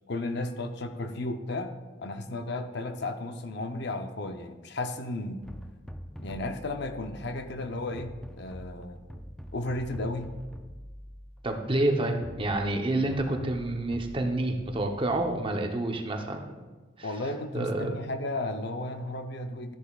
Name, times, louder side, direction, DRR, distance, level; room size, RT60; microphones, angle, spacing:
voice 1, 0.1-1.7 2.0-5.4 6.2-9.0 9.5-10.3 17.0-19.8, left 2 dB, 55° left, 7 dB, 0.6 m, -34 dB
sound 1, 5.4-15.6, equal, 5° left, 0.4 m, -45 dB
voice 2, 11.4-16.4 17.0-17.1 17.5-17.9, right 1 dB, 25° right, 3 dB, 0.8 m, -28 dB
13.5 x 10.5 x 2.4 m, 1.3 s
head